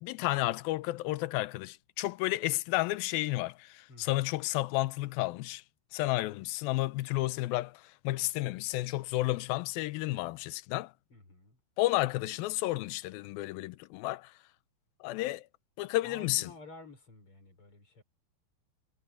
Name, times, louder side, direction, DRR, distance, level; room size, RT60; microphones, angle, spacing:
voice 1, 0.0-5.6 5.9-10.9 11.8-14.3 15.0-15.5 15.8-16.5, left 18 dB, 80° left, 2.3 m, -32 dB
voice 2, 3.9-4.2 11.1-11.6 16.0-18.0, left 3 dB, 30° left, 5.7 m, -52 dB
omnidirectional pair, 4.7 m